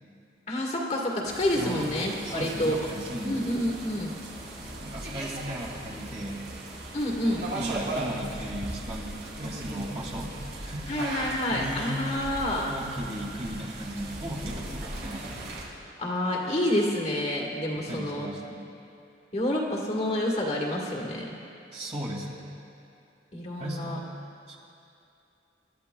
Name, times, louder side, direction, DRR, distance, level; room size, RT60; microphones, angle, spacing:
voice 1, 0.5-2.8 3.2-4.1 6.9-7.4 10.9-12.7 16.0-18.3 19.3-21.4 23.3-24.0, left 1 dB, 35° left, -2 dB, 1.6 m, -28 dB
sound 1, 1.2-15.6, right 1 dB, 70° right, 2.9 m, -38 dB
voice 2, 1.5-1.9 2.2-3.5 4.8-6.5 7.5-10.9 11.5-12.0 12.6-15.5 17.7-18.7 21.7-22.4 23.6-24.0 24.5-24.6, right 1 dB, 35° right, -3 dB, 2.2 m, -36 dB
27.5 x 12.5 x 2.3 m, 2.7 s
head